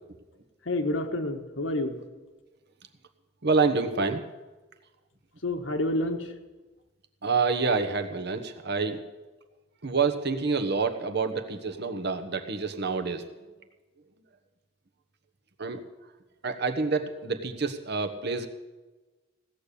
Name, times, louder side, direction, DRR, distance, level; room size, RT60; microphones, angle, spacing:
voice 1, 0.6-1.9 5.4-6.3, left 1 dB, 90° left, 4 dB, 1.6 m, -28 dB
voice 2, 3.4-4.2 7.2-9.0 9.8-13.4 15.6-15.8 16.4-18.5, right 4 dB, 60° right, 7 dB, 1.2 m, -27 dB
16.5 x 6.9 x 9.9 m, 1.2 s
head